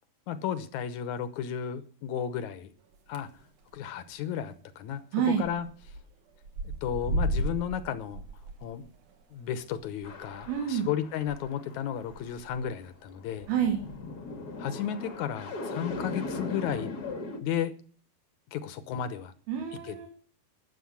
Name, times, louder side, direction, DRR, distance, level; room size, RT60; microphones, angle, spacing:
voice 1, 0.3-2.7 3.1-3.3 3.7-5.0 5.4-5.7 6.8-8.2 8.6-8.9 9.3-13.5 14.6-16.9 17.4-17.7 18.5-19.3 19.9-20.1, left 9 dB, 70° left, 13 dB, 1.9 m, -33 dB
sound 1, 2.9-3.4 3.7-4.0 4.3-4.4 4.6-4.7 5.4-6.0 6.3-11.4 11.7-11.8 12.1-12.6 13.3-14.0, right 1 dB, 65° right, 2.8 m, -35 dB
voice 2, 5.1-5.5 10.5-10.9 13.5-13.8 19.5-20.1, right 8 dB, 85° right, 3 dB, 3.8 m, -28 dB
sound 2, 10.0-12.5 13.1-17.4, left 3 dB, 50° left, 1.1 m, -39 dB
13.5 x 7.1 x 8.6 m, 0.43 s
omnidirectional pair, 4.3 m